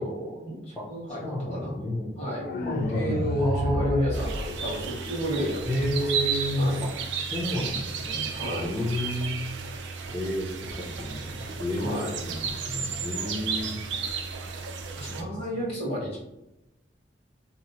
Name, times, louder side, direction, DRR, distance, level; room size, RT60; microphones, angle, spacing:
voice 1, 0.0-1.7 2.2-2.5 2.9-6.2 6.6-6.8 8.3-8.7 11.8-12.1 15.0-16.2, equal, 35° left, -6 dB, 1.5 m, -31 dB
voice 2, 1.2-2.1 2.6-4.0 5.7-6.9 7.3-9.4 10.1-10.5 10.7-13.8 15.1-15.2, equal, 5° left, -8 dB, 0.6 m, -31 dB
sound 1, 2.4-5.4, left 2 dB, 55° left, 0.3 m, -31 dB
sound 2, 4.1-15.2, right 5 dB, 80° right, 0.5 m, -33 dB
2.9 x 2.1 x 4.0 m, 0.92 s
head